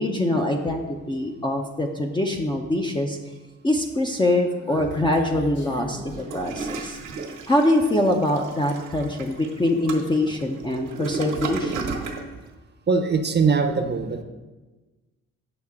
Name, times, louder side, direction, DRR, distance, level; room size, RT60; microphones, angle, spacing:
voice 1, 0.0-3.2 3.6-7.0 7.5-12.0, left 1 dB, 15° left, 1 dB, 0.6 m, -24 dB
Human voice, 4.1-7.1, left 1 dB, 40° left, 1.6 m, -40 dB
Toilet flush, 6.1-12.3, right 4 dB, 85° right, 1.3 m, -34 dB
voice 2, 12.9-14.2, right 5 dB, 35° right, 5 dB, 0.7 m, -21 dB
8.0 x 5.6 x 3.6 m, 1.2 s
cardioid pair, 90°, 30 cm